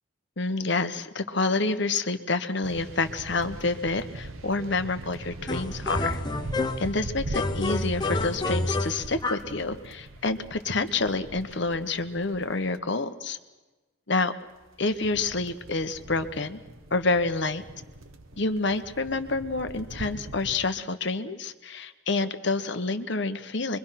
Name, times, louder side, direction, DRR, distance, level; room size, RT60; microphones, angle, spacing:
voice 1, 0.4-6.2 6.8-13.4 14.1-14.3 14.8-16.6 16.9-17.6 18.4-23.8, left 3 dB, 55° left, 10 dB, 1.1 m, -28 dB
sound 1, 2.6-12.8 14.5-20.7, right 1 dB, 75° right, 1.2 m, -41 dB
sound 2, 5.5-7.0 7.3-9.5, left 2 dB, 20° left, 0.8 m, -29 dB
25.0 x 23.0 x 5.9 m, 1.2 s
head